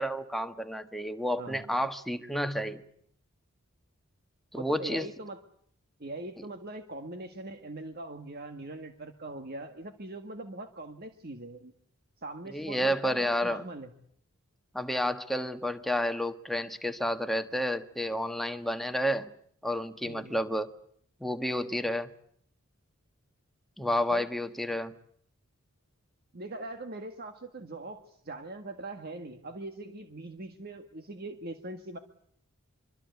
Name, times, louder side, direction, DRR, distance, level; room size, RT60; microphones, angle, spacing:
voice 1, 0.0-2.8 4.5-5.1 12.5-13.6 14.7-19.3 19.6-20.7 21.2-22.1 23.8-25.0, equal, ahead, 1.4 m, -30 dB
voice 2, 1.4-1.7 4.6-5.4 6.0-11.7 12.2-13.9 20.1-20.4 24.1-24.3 26.3-32.0, right 2 dB, 45° right, 1.8 m, -41 dB
25.0 x 25.0 x 8.2 m
head